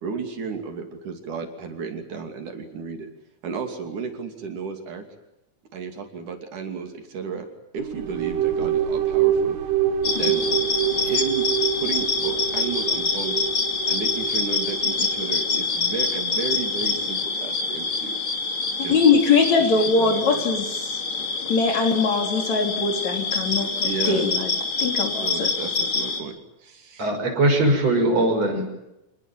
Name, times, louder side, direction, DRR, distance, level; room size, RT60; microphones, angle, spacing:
voice 1, 0.0-3.1 3.4-5.0 5.7-7.5 7.7-9.6 10.1-10.5 11.0-11.5 11.7-13.5 13.9-18.2 18.8-19.0 19.6-20.4 23.8-24.2 25.2-27.1, right 5 dB, 70° right, 5 dB, 4.3 m, -33 dB
sound 1, 7.8-15.4, right 10 dB, 85° right, 3.2 m, -26 dB
sound 2, 10.0-26.2, left 4 dB, 40° left, 3.2 m, -26 dB
voice 2, 18.9-21.0 21.5-23.7 24.1-24.5 24.8-25.5, left 4 dB, 60° left, 4 dB, 4.6 m, -21 dB
voice 3, 27.0-28.7, right 1 dB, 50° right, 3 dB, 6.9 m, -20 dB
26.5 x 19.5 x 9.3 m, 0.88 s
omnidirectional pair, 3.7 m